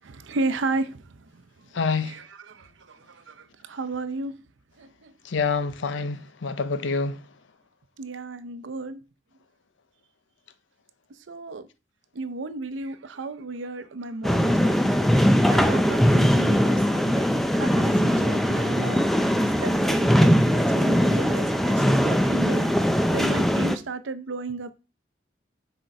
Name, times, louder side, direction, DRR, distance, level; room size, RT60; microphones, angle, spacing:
voice 1, 0.0-1.7 2.0-4.3 4.8-5.1 8.0-9.0 11.3-11.7 12.1-24.7, right 3 dB, 90° right, 0.7 m, -34 dB
voice 2, 1.7-2.1 5.3-7.2, left 4 dB, 85° left, 0.6 m, -26 dB
sound 1, 14.2-23.8, equal, ahead, 0.4 m, -21 dB
6.5 x 4.5 x 4.6 m
head